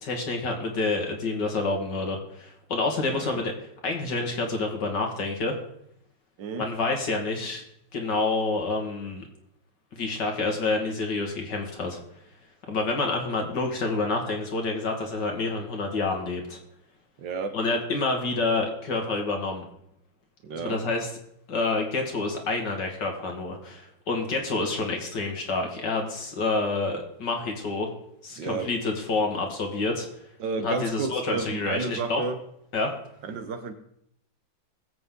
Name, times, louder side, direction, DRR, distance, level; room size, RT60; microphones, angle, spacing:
voice 1, 0.0-3.5 3.8-5.6 6.6-7.6 7.9-9.2 9.9-12.0 12.7-16.6 17.5-19.7 20.6-21.1 21.5-27.9 28.2-30.1 30.6-32.2 32.7-32.9, left 3 dB, 65° left, 2 dB, 2.5 m, -28 dB
voice 2, 3.1-3.4 6.4-6.7 17.2-17.6 20.4-20.8 28.4-28.7 30.4-32.4 33.2-33.7, right 4 dB, 70° right, 9 dB, 1.7 m, -31 dB
20.0 x 8.0 x 3.8 m, 0.74 s
omnidirectional pair, 2.1 m